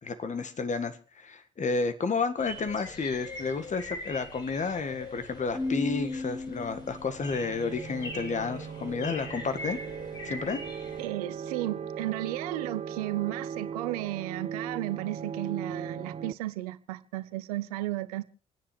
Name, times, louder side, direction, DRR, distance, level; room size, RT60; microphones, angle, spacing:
voice 1, 0.0-9.8 10.2-10.6, left 4 dB, 40° left, 1.8 m, -31 dB
sound 1, 2.4-11.1, left 2 dB, 65° left, 7.3 m, -42 dB
Keyboard (musical), 5.5-7.4, left 3 dB, 5° left, 2.3 m, -34 dB
sound 2, 6.8-16.3, right 7 dB, 35° right, 0.7 m, -39 dB
voice 2, 11.0-18.2, right 16 dB, 80° right, 0.7 m, -34 dB
28.0 x 10.0 x 3.3 m
hypercardioid pair, 45°, 19 cm